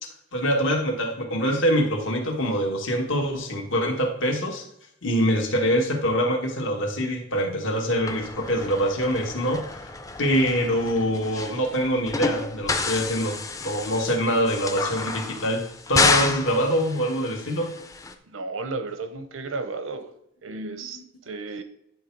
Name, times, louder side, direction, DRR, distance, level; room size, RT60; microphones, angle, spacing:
voice 1, 0.0-4.6 5.0-9.9 10.2-13.3 13.6-17.7, equal, 75° left, 1.7 m, -24 dB
sound 1, 8.1-18.1, left 3 dB, 15° left, 0.4 m, -29 dB
voice 2, 18.3-20.1 20.4-21.6, right 3 dB, 85° right, 0.8 m, -33 dB
9.6 x 3.5 x 4.6 m
head